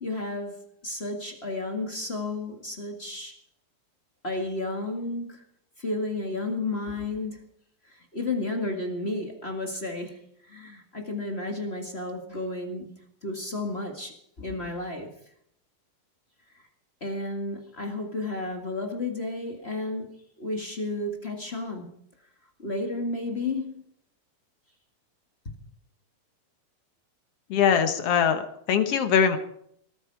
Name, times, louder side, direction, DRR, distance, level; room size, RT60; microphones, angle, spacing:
voice 1, 0.0-3.4 4.2-5.4 5.8-7.5 7.8-12.9 13.2-15.1 16.5-16.6 17.0-20.1 20.4-21.9 22.6-23.8 25.4-25.5, left 2 dB, 35° left, 2 dB, 1.0 m, -32 dB
voice 2, 27.5-29.4, left 7 dB, 70° left, 8 dB, 1.4 m, -22 dB
19.5 x 14.0 x 4.8 m, 0.69 s
omnidirectional pair, 4.4 m